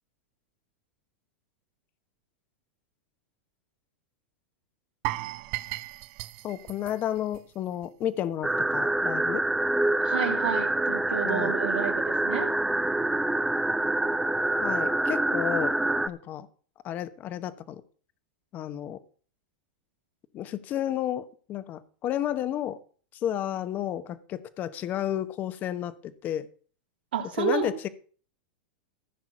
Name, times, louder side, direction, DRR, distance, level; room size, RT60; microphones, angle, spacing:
sound 1, 5.0-8.0 8.3-8.5 9.0-9.1, right 18 dB, 55° right, 0.8 m, -36 dB
voice 1, 6.4-9.4 11.2-11.5 14.6-15.7 16.1-16.5 16.8-17.8 18.5-19.0 20.3-22.8 23.2-25.9 26.2-26.5 27.4-27.9, left 11 dB, 35° left, 14 dB, 1.0 m, -31 dB
sound 2, 8.4-16.1, right 1 dB, 5° right, 0.5 m, -26 dB
voice 2, 10.0-12.5 27.1-27.7, right 9 dB, 85° right, 3 dB, 3.2 m, -30 dB
15.0 x 6.2 x 6.2 m, 0.42 s
supercardioid pair, 130°, 5 cm